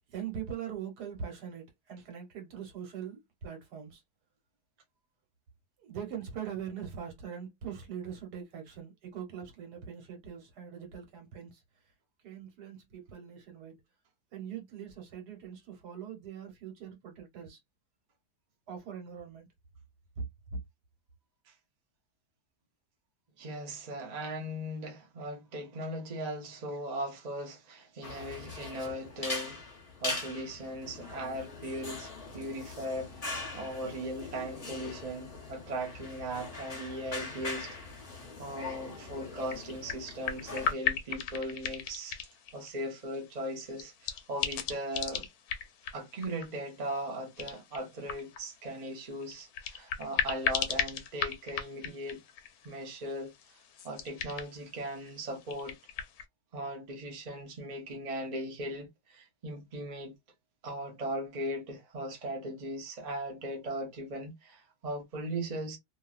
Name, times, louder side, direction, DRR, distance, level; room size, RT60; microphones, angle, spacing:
voice 1, 0.1-4.0 5.8-11.6 12.2-13.8 14.3-17.6 18.7-19.5, right 8 dB, 70° right, 1.5 m, -42 dB
voice 2, 23.4-29.6 30.0-37.8 38.4-42.2 42.5-45.3 45.9-52.2 52.6-53.3 53.8-55.8 56.5-60.1 60.6-65.8, right 1 dB, 35° right, 0.6 m, -38 dB
sound 1, 28.0-40.7, left 3 dB, 35° left, 0.6 m, -41 dB
sound 2, 38.7-56.2, left 8 dB, 70° left, 1.0 m, -38 dB
2.9 x 2.4 x 2.4 m
omnidirectional pair, 1.8 m